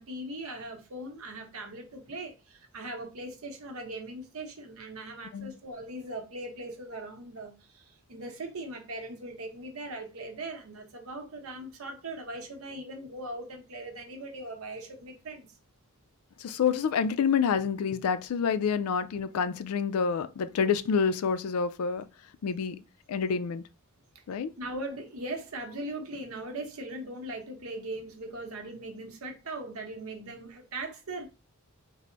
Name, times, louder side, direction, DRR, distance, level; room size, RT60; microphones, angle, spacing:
voice 1, 0.0-15.5 24.6-31.3, right 2 dB, 70° right, 0.8 m, -40 dB
voice 2, 16.4-22.0 22.4-22.8 23.1-23.6 24.3-24.5, left 6 dB, 85° left, 0.4 m, -28 dB
3.3 x 2.0 x 3.8 m
head